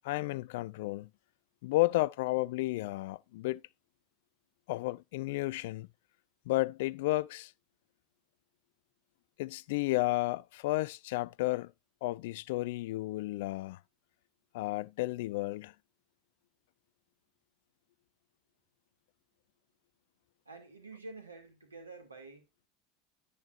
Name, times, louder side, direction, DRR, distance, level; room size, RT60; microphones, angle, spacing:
voice 1, 0.0-1.1 1.6-3.6 4.7-5.9 6.5-7.5 9.4-11.7 12.0-13.8 14.5-15.7, left 19 dB, 65° left, 0.4 m, -32 dB
voice 2, 20.5-22.7, right 3 dB, 85° right, 2.3 m, -49 dB
11.0 x 8.4 x 2.5 m
figure-of-eight pair, 75°, 0 cm